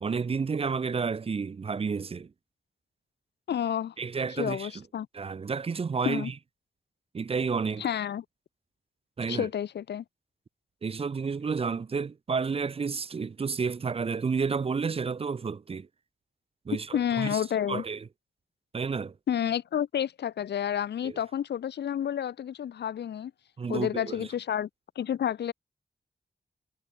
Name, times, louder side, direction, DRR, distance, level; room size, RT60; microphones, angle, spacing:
voice 1, 0.0-2.3 4.0-4.8 5.1-6.3 7.1-7.9 9.2-9.5 10.8-15.9 16.7-17.4 17.7-18.0 18.7-19.1 21.0-21.2 23.6-24.3, right 5 dB, 35° right, 0.4 m, -31 dB
voice 2, 3.5-3.9 4.3-5.1 6.0-6.3 7.8-8.2 9.3-10.0 16.9-17.8 19.3-23.3 23.7-24.7 25.0-25.5, left 9 dB, 85° left, 0.5 m, -30 dB
wide cardioid pair, 165°, 17 cm